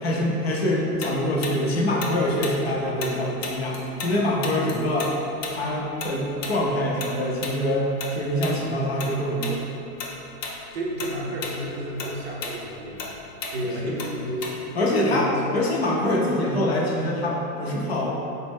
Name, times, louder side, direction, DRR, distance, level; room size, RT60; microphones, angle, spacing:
voice 1, 0.0-5.1 5.5-7.9 8.1-9.7 13.8-13.9 14.8-18.2, left 1 dB, 45° left, -3 dB, 0.4 m, -24 dB
Tick-tock, 1.0-4.1 4.4-9.1 9.4-9.6 10.0-10.6 10.9-14.8, left 4 dB, 90° left, 0.8 m, -34 dB
voice 2, 10.7-13.1 13.5-14.8 15.1-15.4, right 1 dB, 45° right, -3 dB, 0.5 m, -31 dB
4.1 x 2.0 x 3.4 m, 2.9 s
supercardioid pair, 175°, 47 cm